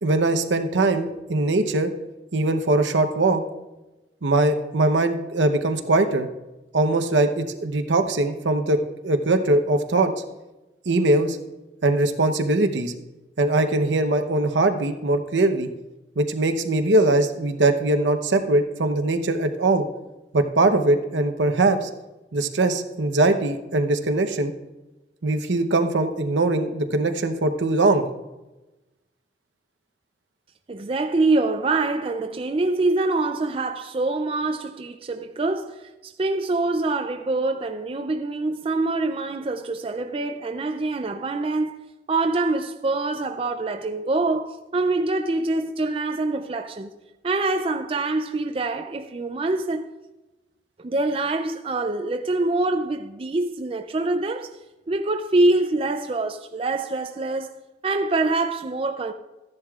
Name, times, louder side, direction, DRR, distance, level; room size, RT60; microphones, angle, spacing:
voice 1, 0.0-1.9 2.3-3.4 4.2-6.3 6.7-8.8 9.0-10.1 10.9-11.4 11.8-12.9 13.4-15.7 16.2-19.9 20.3-21.9 22.3-24.5 25.2-28.0, right 2 dB, 85° right, 0.8 m, -21 dB
voice 2, 30.7-46.9 47.2-49.9 50.8-54.5 54.9-59.1, right 2 dB, 30° right, 0.4 m, -25 dB
14.5 x 10.5 x 2.4 m
head